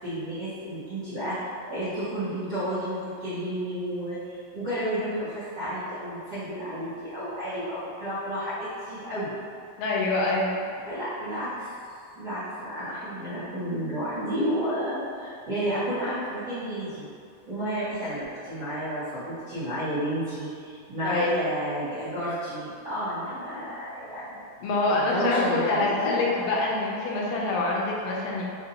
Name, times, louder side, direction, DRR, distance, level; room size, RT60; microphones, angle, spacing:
voice 1, 0.0-9.3 10.8-17.0 17.5-24.4 24.8-26.2 27.3-27.5, equal, 65° right, -14 dB, 1.6 m, -31 dB
voice 2, 9.8-10.7 21.0-21.4 24.6-28.4, left 2 dB, 85° left, -3 dB, 3.0 m, -25 dB
7.2 x 2.7 x 2.8 m, 2.3 s
omnidirectional pair, 5.4 m